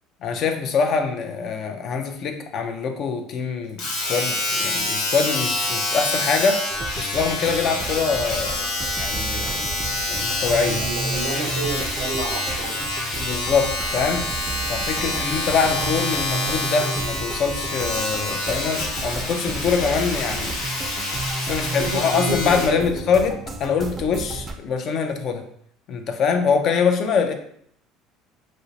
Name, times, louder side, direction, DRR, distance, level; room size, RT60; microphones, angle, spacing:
voice 1, 0.2-8.6 9.0-9.6 10.1-10.8 13.2-14.3 14.7-20.6 21.4-25.5 25.9-27.3, left 5 dB, 55° left, 5 dB, 0.4 m, -24 dB
Domestic sounds home sounds, 3.8-22.8 23.5-23.6, left 2 dB, 70° left, 0.9 m, -27 dB
sound 1, 6.7-24.5, right 2 dB, 35° right, 0.4 m, -33 dB
voice 2, 9.4-9.9 10.4-12.9 14.9-15.5 21.8-22.9, right 3 dB, 85° right, 1 dB, 0.5 m, -31 dB
2.5 x 2.0 x 2.8 m, 0.66 s
hypercardioid pair, 75°, 0 cm